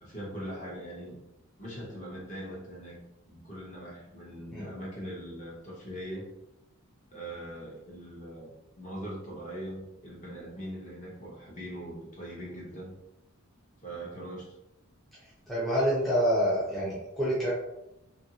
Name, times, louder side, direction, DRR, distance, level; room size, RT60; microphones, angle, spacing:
voice 1, 0.0-1.2 1.6-3.0 3.2-6.3 7.1-12.9 13.8-14.5, equal, 35° left, -4 dB, 0.9 m, -41 dB
voice 2, 15.5-17.5, equal, ahead, -8 dB, 0.5 m, -27 dB
2.8 x 2.5 x 2.8 m, 0.90 s
head